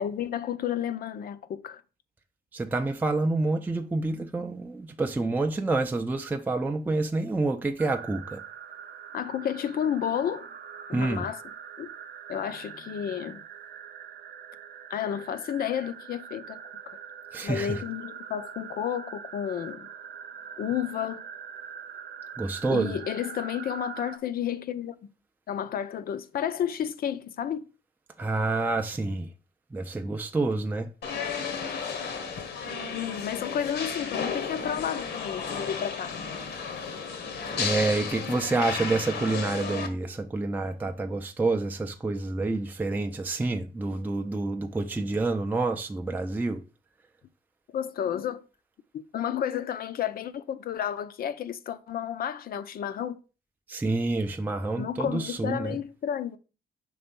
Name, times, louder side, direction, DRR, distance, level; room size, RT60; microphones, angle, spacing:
voice 1, 0.0-1.8 9.1-10.5 10.9-11.4 11.8-11.9 12.3-13.4 14.9-16.6 16.9-17.0 17.4-19.9 20.6-21.3 22.7-24.9 25.5-27.6 32.9-36.2 47.7-48.4 48.9-53.2 54.8-56.4, left 9 dB, 60° left, 0.6 m, -31 dB
voice 2, 2.5-8.4 10.9-11.3 17.3-17.8 22.4-23.0 28.2-29.3 29.7-30.9 37.5-46.6 53.7-55.8, right 3 dB, 10° right, 0.4 m, -28 dB
sound 1, 7.8-24.2, right 8 dB, 65° right, 0.6 m, -43 dB
sound 2, 31.0-39.9, left 5 dB, 80° left, 1.2 m, -33 dB
5.5 x 3.4 x 5.2 m
cardioid pair, 115°, 18 cm